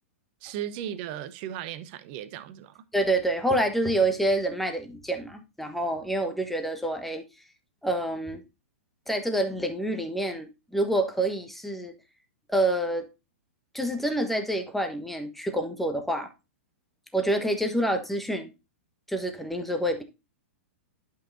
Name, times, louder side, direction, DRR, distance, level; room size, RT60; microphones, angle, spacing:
voice 1, 0.4-2.8, right 10 dB, 45° right, 0.9 m, -36 dB
voice 2, 2.9-7.2 7.8-8.4 9.1-11.9 12.5-13.0 13.7-16.3 17.1-18.5 19.1-20.0, right 1 dB, ahead, 1.2 m, -27 dB
11.5 x 5.6 x 2.7 m
figure-of-eight pair, 110°, 7 cm